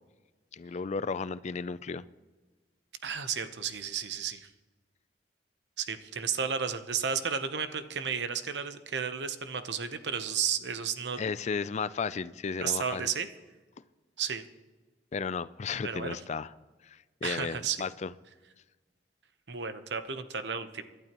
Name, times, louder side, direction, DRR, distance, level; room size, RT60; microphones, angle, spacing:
voice 1, 0.5-2.0 11.2-13.1 15.1-16.5 16.8-18.1, left 5 dB, 40° left, 16 dB, 0.4 m, -34 dB
voice 2, 3.0-4.5 5.8-11.2 12.6-13.3 14.2-14.4 15.8-16.2 17.2-17.8 19.5-20.8, right 7 dB, 75° right, 10 dB, 0.9 m, -33 dB
25.5 x 11.5 x 3.0 m, 1.3 s
head